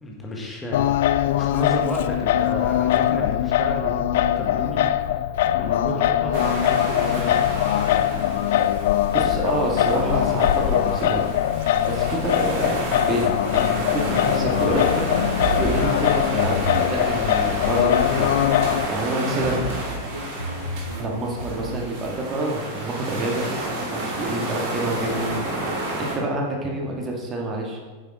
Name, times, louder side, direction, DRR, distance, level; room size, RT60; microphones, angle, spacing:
voice 1, 0.0-4.8 5.1-5.2 5.6-7.4 7.7-8.1, equal, 15° left, -1 dB, 1.5 m, -32 dB
Singing, 0.7-18.9, left 11 dB, 55° left, 0.3 m, -22 dB
sound 1, 6.3-26.1, right 1 dB, 45° right, 2.5 m, -31 dB
voice 2, 9.1-11.3 11.9-18.3 18.6-19.6 21.0-23.5 23.9-27.8, right 1 dB, 25° right, 0 dB, 1.9 m, -27 dB
sound 2, 14.3-22.0, right 1 dB, 85° right, 1.3 m, -32 dB
9.6 x 7.6 x 3.8 m, 1.4 s
figure-of-eight pair, 90°, 0 cm